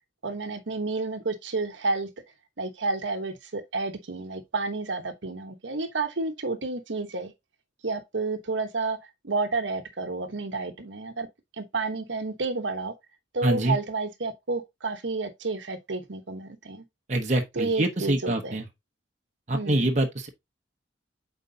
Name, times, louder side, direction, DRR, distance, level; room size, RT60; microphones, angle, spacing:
voice 1, 0.2-2.1 2.6-7.3 7.8-9.0 9.2-11.3 11.6-12.9 13.3-16.8 17.6-18.6 19.5-19.9, right 3 dB, 85° right, 1.1 m, -30 dB
voice 2, 13.4-13.8 17.1-18.7 19.5-20.3, right 1 dB, 40° right, 1.0 m, -25 dB
7.8 x 4.5 x 2.7 m
head